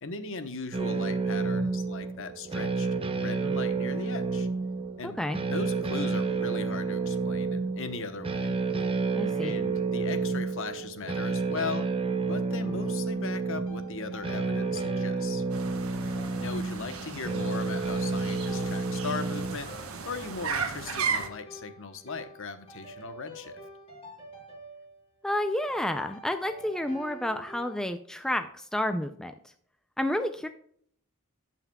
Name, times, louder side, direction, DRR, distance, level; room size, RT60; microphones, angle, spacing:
voice 1, 0.0-2.9 3.2-4.5 5.0-5.2 5.5-8.6 9.4-11.9 12.3-15.4 16.4-23.6, left 4 dB, 65° left, 9 dB, 1.0 m, -38 dB
sound 1, 0.7-19.6, right 4 dB, 25° right, 0.8 m, -30 dB
voice 2, 5.0-5.4 9.2-9.5 25.2-29.3 30.0-30.5, left 1 dB, 5° left, 7 dB, 0.4 m, -30 dB
sound 2, 12.6-27.9, equal, 30° left, 3.4 m, -49 dB
sound 3, 15.5-21.3, right 5 dB, 70° right, 1.3 m, -35 dB
17.5 x 5.8 x 2.3 m, 0.63 s
head